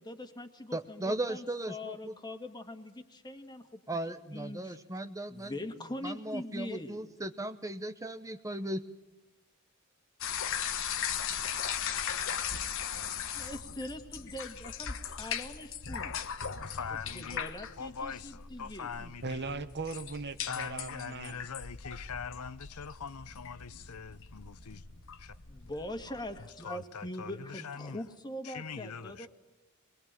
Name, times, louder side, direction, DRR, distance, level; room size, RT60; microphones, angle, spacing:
voice 1, 0.0-4.8 5.3-7.0 13.3-16.1 17.1-18.9 25.5-29.3, left 1 dB, 20° left, 1.9 m, -42 dB
voice 2, 0.7-2.1 3.9-5.6 6.0-8.8, right 1 dB, 15° right, 0.9 m, -37 dB
sound 1, 10.2-26.5, left 8 dB, 65° left, 1.3 m, -38 dB
voice 3, 16.6-17.4 17.8-19.5 20.5-24.8 25.2-25.3 26.6-28.0 28.4-29.3, left 6 dB, 80° left, 0.8 m, -42 dB
voice 4, 19.0-21.4, right 4 dB, 50° right, 1.2 m, -39 dB
23.0 x 21.5 x 9.1 m
head